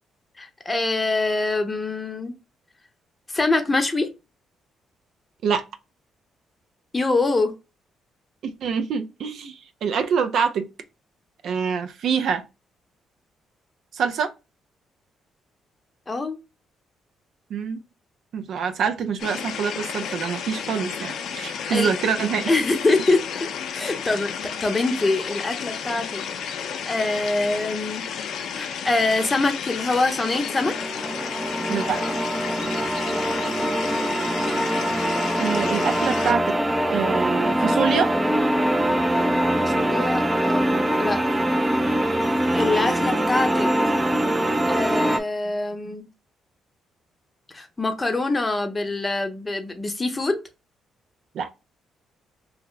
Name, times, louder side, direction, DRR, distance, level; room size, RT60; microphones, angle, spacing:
voice 1, 0.4-2.3 3.3-4.1 6.9-7.5 16.1-16.4 21.2-21.4 21.7-21.9 22.5-24.3 24.6-26.2 26.8-28.0 28.6-30.7 33.1-34.1 39.6-41.2 42.5-43.7 44.7-46.1 47.5-50.4, left 2 dB, 20° left, 0.7 m, -24 dB
voice 2, 8.6-10.7 11.4-12.4 13.9-14.3 17.5-17.8 18.3-22.5 31.7-32.0 35.4-36.6 36.9-38.1 51.3-51.5, right 6 dB, 70° right, 0.4 m, -25 dB
sound 1, 19.2-36.3, left 7 dB, 70° left, 0.4 m, -32 dB
sound 2, 30.2-45.2, right 1 dB, 15° right, 0.4 m, -23 dB
2.8 x 2.1 x 3.8 m
cardioid pair, 90°, 0 cm